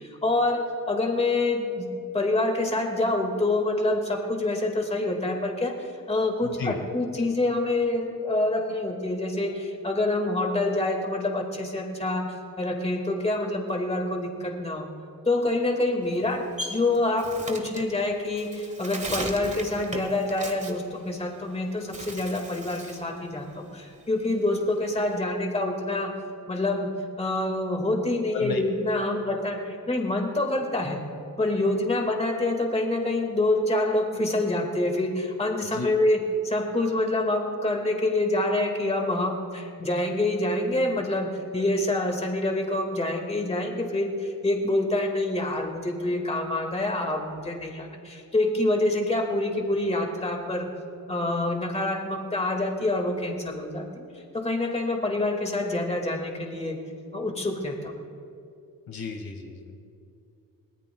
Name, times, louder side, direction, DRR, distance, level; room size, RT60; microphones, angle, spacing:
voice 1, 0.0-1.9 2.1-14.9 15.3-26.1 26.5-31.0 31.4-50.7 51.1-56.8 57.1-58.0, left 2 dB, 20° left, 3 dB, 1.9 m, -26 dB
voice 2, 6.4-6.7 28.3-28.6 35.7-35.9 58.9-59.9, left 5 dB, 75° left, 3 dB, 1.9 m, -34 dB
Bird, 16.0-21.5 21.8-23.1 23.5-25.2, right 2 dB, 20° right, 1.4 m, -38 dB
23.5 x 18.5 x 2.3 m, 2.6 s
cardioid pair, 110°, 35 cm